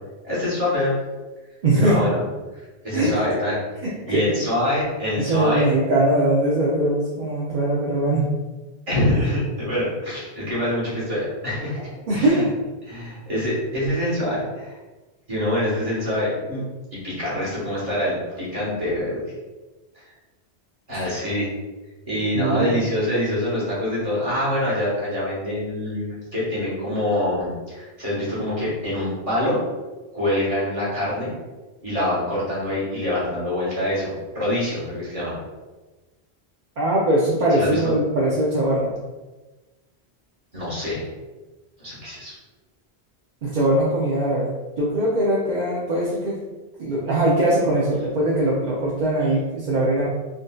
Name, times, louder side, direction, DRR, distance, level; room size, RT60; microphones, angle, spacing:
voice 1, 0.2-0.9 1.7-2.2 2.5-3.6 4.1-5.7 8.9-11.8 12.1-12.5 12.9-14.8 15.3-16.6 17.0-19.2 20.9-21.5 22.0-29.6 30.1-31.3 31.8-35.4 37.6-37.9 40.5-41.0 41.8-42.3, left 1 dB, 35° right, -8 dB, 1.3 m, -25 dB
voice 2, 1.6-2.0 2.9-3.1 3.8-4.6 5.1-8.2 12.1-12.5 22.3-22.8 36.8-38.9 43.4-46.4 46.8-50.1, right 1 dB, 55° right, -6 dB, 0.6 m, -21 dB
3.7 x 2.5 x 2.2 m, 1.2 s
omnidirectional pair, 1.1 m